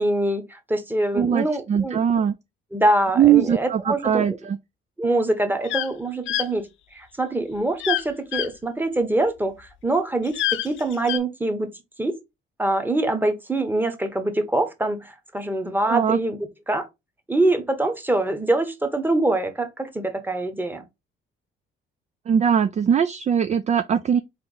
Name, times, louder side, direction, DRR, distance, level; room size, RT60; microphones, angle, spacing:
voice 1, 0.0-2.0 2.7-4.4 5.0-11.7 12.0-12.2 12.6-16.4 16.7-16.9 17.3-20.8, right 2 dB, 10° right, 1.1 m, -24 dB
voice 2, 1.1-2.3 3.2-4.6 15.9-16.2 22.3-24.2, right 8 dB, 35° right, 0.4 m, -20 dB
sound 1, 5.6-5.9 6.3-6.5 7.8-8.0 8.3-8.5 10.2-11.2, left 12 dB, 80° left, 0.6 m, -26 dB
3.8 x 3.4 x 4.0 m
cardioid pair, 90°, 20 cm